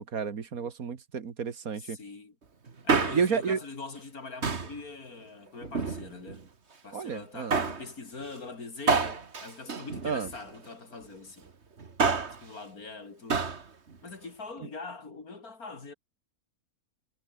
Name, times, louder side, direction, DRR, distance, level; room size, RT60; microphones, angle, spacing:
voice 1, 0.0-2.0 3.1-3.6 6.9-7.6 10.0-10.3, right 6 dB, 65° right, 2.1 m, -31 dB
voice 2, 1.8-2.4 2.8-6.5 6.8-11.5 12.4-13.4 14.0-15.9, left 3 dB, 70° left, 3.7 m, -43 dB
Male speech man speaking, 2.7-3.5 4.4-4.8 5.6-6.4 7.5-7.9 8.9-10.5 11.8-12.4 13.3-13.6 13.9-14.0, right 4 dB, 45° right, 2.1 m, -28 dB
omnidirectional pair, 1.6 m